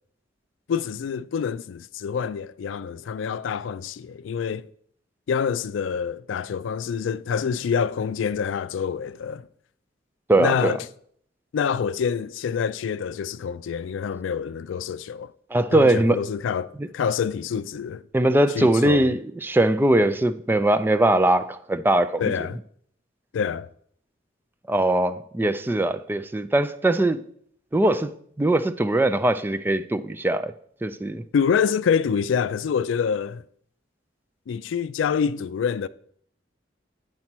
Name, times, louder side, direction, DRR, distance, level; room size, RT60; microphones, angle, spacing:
voice 1, 0.7-4.7 5.3-9.5 10.4-10.9 11.5-15.3 15.7-18.0 18.5-19.1 22.2-22.6 23.3-23.7 31.3-33.4 34.5-35.9, left 6 dB, 90° left, 0.3 m, -26 dB
voice 2, 10.3-10.8 15.5-16.2 16.8-16.9 18.1-22.2 24.7-27.2 27.7-28.1 28.4-30.5 30.8-31.2, right 1 dB, 10° right, 0.3 m, -21 dB
8.8 x 4.2 x 5.9 m
head